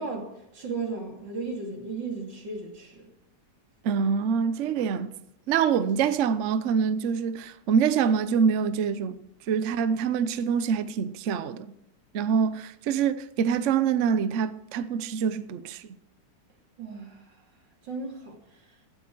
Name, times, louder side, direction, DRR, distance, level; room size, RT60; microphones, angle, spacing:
voice 1, 0.0-3.1 16.8-17.4 17.8-18.6, right 4 dB, 90° right, 3.2 m, -35 dB
voice 2, 3.8-5.1 5.5-9.2 9.5-11.7 12.1-15.8, right 7 dB, 55° right, 0.9 m, -25 dB
16.5 x 9.5 x 4.6 m
omnidirectional pair, 1.9 m